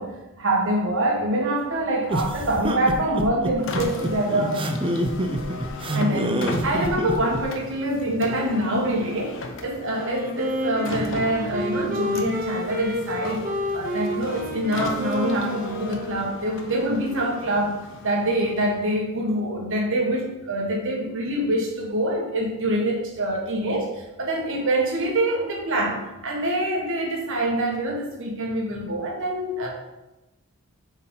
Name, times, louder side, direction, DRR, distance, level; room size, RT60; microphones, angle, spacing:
voice 1, 0.0-4.7 5.9-13.4 13.7-29.7, right 1 dB, 60° right, -1 dB, 1.6 m, -25 dB
sound 1, 2.1-7.4, right 1 dB, 25° right, 0.5 m, -26 dB
Car, 3.6-19.0, left 2 dB, 60° left, 0.9 m, -37 dB
Wind instrument woodwind instrument, 10.0-16.6, equal, 40° right, 0.9 m, -30 dB
7.1 x 4.5 x 3.9 m, 0.99 s
head